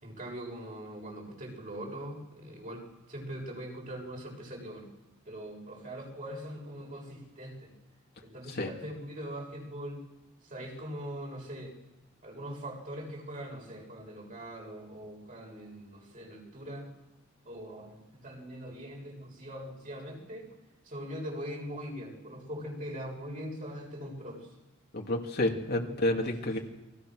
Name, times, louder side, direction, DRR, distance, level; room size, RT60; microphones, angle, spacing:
voice 1, 0.0-4.9 5.3-7.7 8.2-10.0 10.4-11.7 12.2-16.9 17.4-20.5 20.8-24.5 25.8-25.9 26.4-26.6, equal, 40° right, -1 dB, 7.5 m, -42 dB
voice 2, 24.9-26.6, left 1 dB, 50° left, 1 dB, 2.6 m, -30 dB
29.5 x 23.0 x 6.4 m, 1.0 s
head